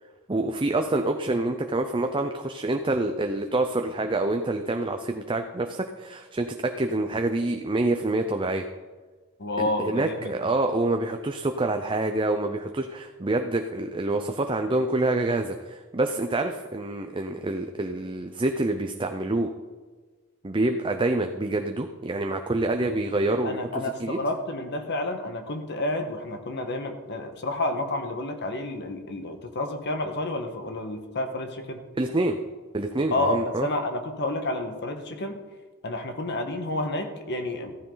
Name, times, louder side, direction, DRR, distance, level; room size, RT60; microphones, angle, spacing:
voice 1, 0.3-8.6 9.6-19.5 20.4-24.2 32.0-32.4 32.7-33.7, right 2 dB, 25° right, 6 dB, 0.6 m, -27 dB
voice 2, 9.4-10.4 23.4-31.8 33.1-35.4 35.8-37.7, left 1 dB, 55° left, 6 dB, 1.4 m, -30 dB
15.0 x 13.5 x 4.0 m, 1.4 s
head